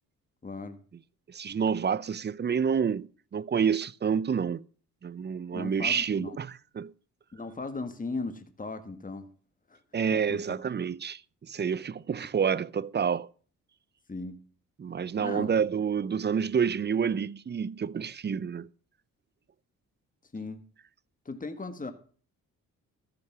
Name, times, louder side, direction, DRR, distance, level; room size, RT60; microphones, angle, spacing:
voice 1, 0.4-0.8 5.5-6.4 7.3-9.3 9.7-9.8 10.1-10.6 14.1-14.4 15.2-15.5 20.3-20.6 21.2-21.9, left 3 dB, 20° left, 1.5 m, -37 dB
voice 2, 1.3-4.6 5.0-6.9 9.9-13.3 14.8-18.7, right 7 dB, 30° right, 0.5 m, -28 dB
14.0 x 6.7 x 5.8 m
supercardioid pair, 60°, 36 cm